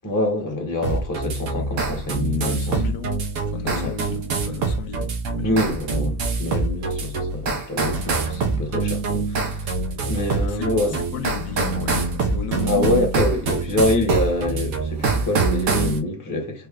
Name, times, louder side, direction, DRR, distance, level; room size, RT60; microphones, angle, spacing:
voice 1, 0.0-2.8 3.6-3.9 5.4-9.8 10.1-10.9 12.5-16.7, left 1 dB, 15° left, 0.8 m, -25 dB
sound 1, 0.8-16.0, right 3 dB, 90° right, 1.2 m, -25 dB
voice 2, 2.3-5.8 10.5-10.7 11.1-13.4, left 9 dB, 75° left, 1.0 m, -33 dB
3.6 x 2.1 x 3.5 m
omnidirectional pair, 1.4 m